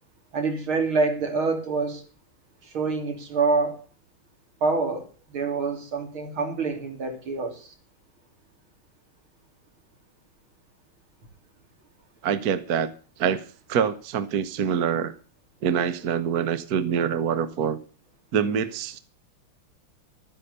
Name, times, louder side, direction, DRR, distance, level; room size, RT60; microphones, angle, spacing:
voice 1, 0.3-2.0 2.6-3.8 4.6-7.7, right 4 dB, 80° right, 4 dB, 3.7 m, -26 dB
voice 2, 12.2-12.9 13.2-13.4 13.7-15.1 15.6-17.8 18.3-19.0, right 7 dB, 55° right, 12 dB, 1.4 m, -25 dB
13.0 x 9.9 x 6.6 m, 0.38 s
omnidirectional pair, 2.2 m